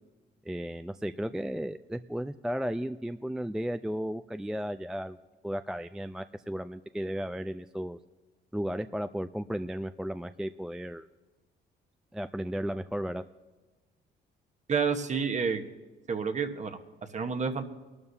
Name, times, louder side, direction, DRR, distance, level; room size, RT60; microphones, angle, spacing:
voice 1, 0.5-5.2 5.4-8.0 8.5-11.1 12.1-13.2, equal, 5° right, 10 dB, 0.3 m, -34 dB
voice 2, 14.7-15.6 16.1-16.8 17.1-17.6, right 5 dB, 35° right, 6 dB, 1.2 m, -29 dB
23.0 x 12.5 x 2.8 m, 1.3 s
cardioid pair, 90°, 20 cm